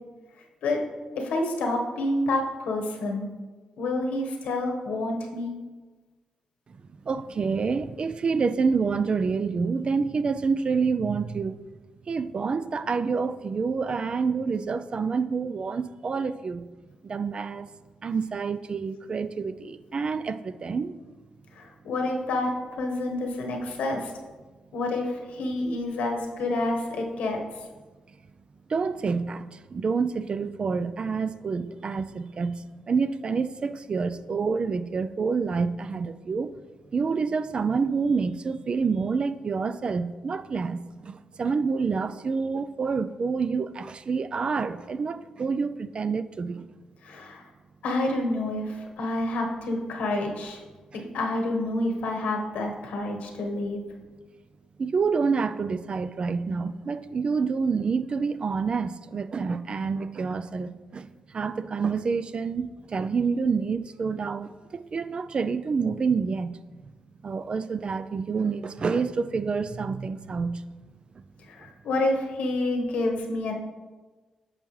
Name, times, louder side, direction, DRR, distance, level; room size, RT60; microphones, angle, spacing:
voice 1, 1.2-3.3 3.8-5.5 21.5-22.5 22.8-24.1 24.7-27.4 47.0-47.5 47.8-50.6 50.9-53.8 71.5-73.5, left 2 dB, 85° left, 1.2 m, -28 dB
voice 2, 6.9-11.6 12.1-16.7 17.0-17.7 18.0-21.0 28.7-36.5 36.9-46.7 50.9-51.0 54.8-66.6 66.8-66.9 67.2-70.6 71.1-71.2 71.6-71.7, right 5 dB, 45° right, 0.3 m, -28 dB
8.8 x 5.7 x 3.2 m
cardioid pair, 70°, 2 cm